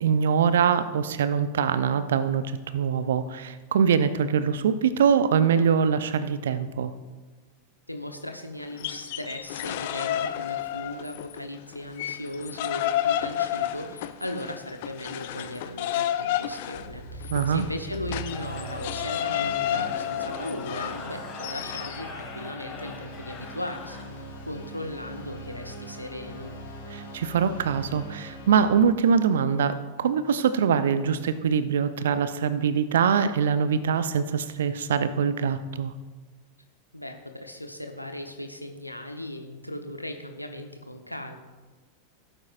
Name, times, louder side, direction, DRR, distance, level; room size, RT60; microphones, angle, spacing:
voice 1, 0.0-6.9 17.3-17.6 26.9-35.9, right 7 dB, 60° right, 13 dB, 0.6 m, -23 dB
voice 2, 7.9-24.0 24.5-26.5 36.9-41.4, left 1 dB, 90° left, 5 dB, 0.9 m, -37 dB
sound 1, 8.7-11.4 11.7-22.0, left 11 dB, 50° left, 0.5 m, -31 dB
sound 2, 16.7-28.8, equal, 70° left, 3.7 m, -41 dB
Cheering / Crowd, 18.1-24.4, left 4 dB, 30° left, 2.1 m, -42 dB
16.0 x 8.9 x 2.5 m, 1.3 s
figure-of-eight pair, 90°, 0 cm